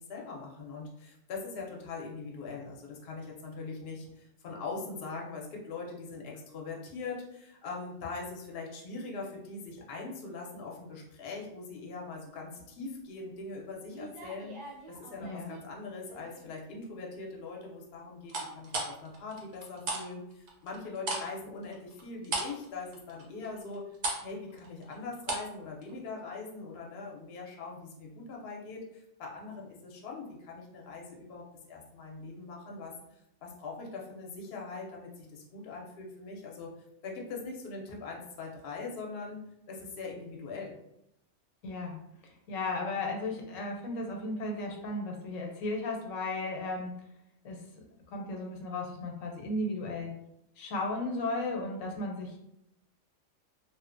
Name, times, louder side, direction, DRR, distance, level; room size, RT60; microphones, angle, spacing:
voice 1, 0.0-14.6 14.9-23.8 24.2-31.4 31.7-36.7 37.0-40.7, left 4 dB, 60° left, -1 dB, 0.7 m, -42 dB
sound 1, 13.9-15.6 16.1-16.5 18.3-20.0 20.3-25.6 25.8-25.9, right 2 dB, 55° right, 0.6 m, -37 dB
voice 2, 15.2-15.5 41.6-42.0 42.5-46.9 47.4-47.6 48.1-50.1 50.6-52.4, left 2 dB, 90° left, 1 dB, 1.0 m, -35 dB
2.6 x 2.1 x 2.5 m, 0.80 s
omnidirectional pair, 1.3 m